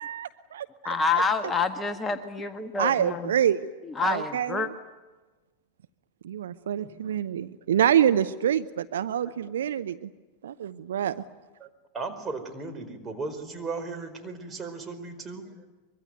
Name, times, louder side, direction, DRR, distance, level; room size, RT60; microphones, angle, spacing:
voice 1, 0.0-0.9 2.8-3.7 4.1-4.7 6.2-10.1 10.4-11.2, right 10 dB, 60° right, 13 dB, 0.8 m, -26 dB
voice 2, 0.8-3.3 4.0-4.7, left 4 dB, 15° left, 8 dB, 1.4 m, -27 dB
voice 3, 11.9-15.6, right 3 dB, 20° right, 5 dB, 4.8 m, -36 dB
24.0 x 23.5 x 9.4 m, 1.2 s
figure-of-eight pair, 90°, 0 cm